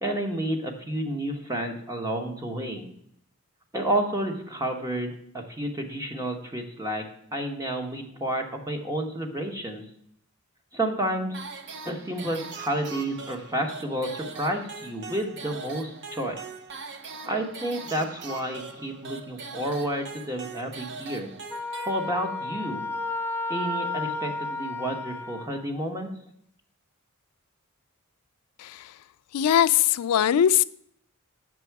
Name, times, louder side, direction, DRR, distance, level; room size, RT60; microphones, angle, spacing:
voice 1, 0.0-2.9 3.7-7.0 7.3-9.8 10.7-11.4 11.8-16.4 17.2-21.3 21.8-22.9 23.5-26.1, right 1 dB, 15° right, 1.1 m, -30 dB
sound 1, 11.3-22.5, right 4 dB, 55° right, 0.8 m, -41 dB
Wind instrument woodwind instrument, 21.5-25.6, left 3 dB, 10° left, 0.6 m, -32 dB
voice 2, 28.6-29.0 29.3-30.6, left 10 dB, 85° left, 0.3 m, -21 dB
7.8 x 6.9 x 4.6 m
head